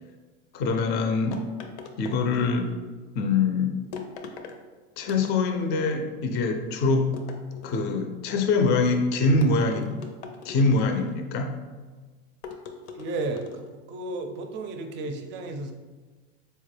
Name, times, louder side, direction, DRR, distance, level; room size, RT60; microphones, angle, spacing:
voice 1, 0.5-1.4 2.0-2.7 3.2-3.8 5.0-7.1 7.6-9.9 10.4-11.6, left 3 dB, 35° left, 5 dB, 0.4 m, -24 dB
sound 1, 1.3-2.7 3.9-4.6 5.0-5.7 7.1-8.0 9.4-11.2 12.4-13.7, left 5 dB, 90° left, 0.5 m, -41 dB
voice 2, 12.9-15.7, right 2 dB, 35° right, 5 dB, 0.5 m, -33 dB
4.2 x 2.2 x 3.2 m, 1.3 s
supercardioid pair, 125°, 32 cm